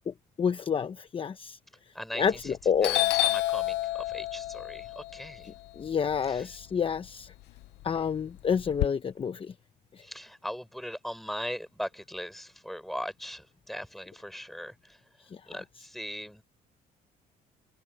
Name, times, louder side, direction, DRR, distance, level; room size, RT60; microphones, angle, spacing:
voice 1, 0.1-1.6 2.1-2.9 5.8-7.3 7.8-9.5, left 7 dB, 30° left, 0.9 m, -29 dB
voice 2, 1.9-2.4 2.8-5.5 6.3-6.4 10.0-14.7 15.5-16.4, equal, ahead, 5.7 m, -39 dB
Doorbell, 2.2-2.5 2.8-7.0 7.3-8.9, left 18 dB, 80° left, 0.7 m, -30 dB
cardioid pair, 110°, 17 cm